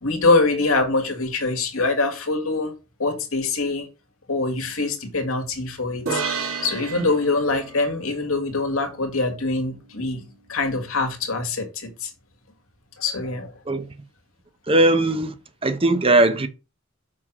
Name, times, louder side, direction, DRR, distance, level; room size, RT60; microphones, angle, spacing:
voice 1, 0.0-2.7 3.0-3.9 4.3-6.2 6.6-10.2 10.5-12.1 13.0-13.5, left 3 dB, 75° left, 1.9 m, -24 dB
sound 1, 6.1-9.5, right 5 dB, 80° right, 2.7 m, -32 dB
voice 2, 14.7-15.3 15.6-16.5, right 2 dB, 25° right, 0.7 m, -18 dB
6.1 x 4.6 x 6.0 m
head